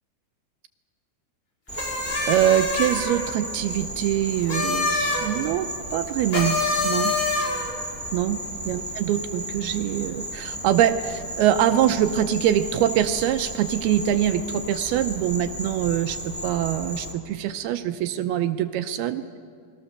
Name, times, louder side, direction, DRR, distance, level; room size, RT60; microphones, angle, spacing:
sound 1, 1.7-3.2 4.4-5.3 6.3-7.7, left 3 dB, 30° left, 5.8 m, -25 dB
Insect, 1.7-17.1, right 1 dB, 5° left, 1.3 m, -35 dB
voice 1, 2.3-6.6 6.8-7.1 8.1-8.4 8.7-19.2, right 11 dB, 80° right, 9 dB, 2.4 m, -24 dB
28.5 x 21.0 x 6.7 m, 2.3 s
omnidirectional pair, 4.8 m